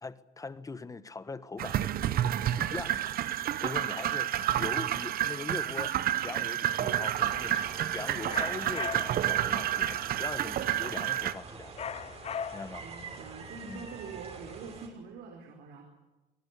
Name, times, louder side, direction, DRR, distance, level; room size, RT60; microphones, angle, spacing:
voice 1, 0.0-2.0 2.6-3.1 3.6-5.9 6.2-11.7 12.5-12.9 13.6-13.9, left 3 dB, 20° left, 1.4 m, -41 dB
sound 1, 1.6-11.3, right 11 dB, 60° right, 1.1 m, -30 dB
sound 2, 7.1-14.9, right 4 dB, 40° right, 5.4 m, -46 dB
sound 3, 8.3-9.3 11.8-12.9, left 7 dB, 40° left, 0.7 m, -38 dB
voice 2, 12.8-15.8, right 5 dB, 85° right, 4.5 m, -45 dB
26.0 x 19.5 x 8.4 m
cardioid pair, 110°, 17 cm